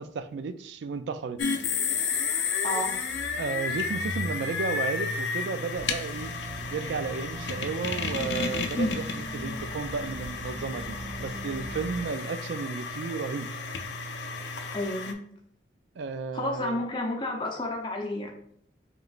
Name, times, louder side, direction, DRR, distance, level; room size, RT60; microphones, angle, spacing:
voice 1, 0.0-1.4 3.4-6.3 6.7-13.5 16.0-16.8, right 5 dB, 70° right, 11 dB, 0.3 m, -33 dB
sound 1, 1.4-15.1, left 5 dB, 70° left, 0.5 m, -32 dB
voice 2, 2.6-3.0 8.8-9.0 14.7-15.2 16.3-18.3, left 1 dB, 25° left, -1 dB, 0.6 m, -30 dB
sound 2, 5.7-12.1, equal, 10° right, 0.8 m, -42 dB
5.0 x 3.1 x 2.4 m, 0.67 s
head